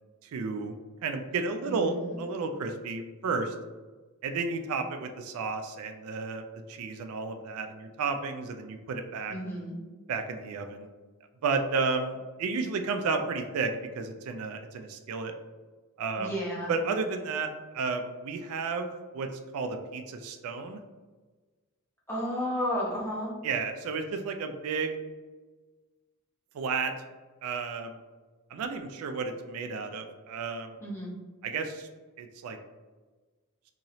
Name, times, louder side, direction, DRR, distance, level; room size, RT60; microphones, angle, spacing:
voice 1, 0.2-0.8 1.0-3.5 4.2-9.3 10.1-10.9 11.4-15.3 16.0-16.3 16.7-19.3 19.5-20.8 23.4-24.9 26.5-26.9 27.4-28.0 28.5-30.8 31.4-31.9 32.2-32.6, right 4 dB, 70° right, 6 dB, 0.3 m, -32 dB
voice 2, 1.6-2.2 9.3-9.8 16.2-16.7 22.1-23.3 30.8-31.1, equal, 10° left, -6 dB, 0.9 m, -32 dB
3.0 x 2.8 x 2.7 m, 1.3 s
head